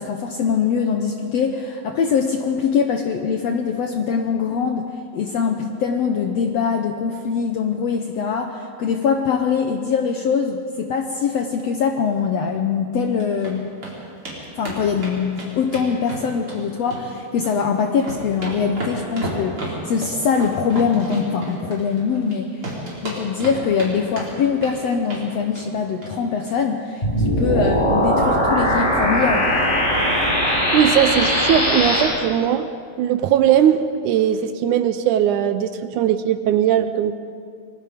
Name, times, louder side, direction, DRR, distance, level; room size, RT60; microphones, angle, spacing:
voice 1, 0.0-13.7 14.6-22.7 23.0-29.5, left 6 dB, 80° left, 4 dB, 1.4 m, -23 dB
sound 1, 13.0-13.5 13.8-13.9 14.3-14.4 14.6-16.6 16.9-17.6 17.9-22.3 22.6-23.9 24.2-24.8 25.1-25.3 25.6-25.7 26.0-26.1 26.4-26.5, right 1 dB, 35° right, 5.1 m, -32 dB
sound 2, 27.0-32.0, equal, 15° left, 5.2 m, -19 dB
voice 2, 30.7-32.7 33.0-37.1, right 9 dB, 80° right, 10 dB, 1.8 m, -19 dB
28.0 x 20.5 x 5.1 m, 2.4 s
omnidirectional pair, 4.2 m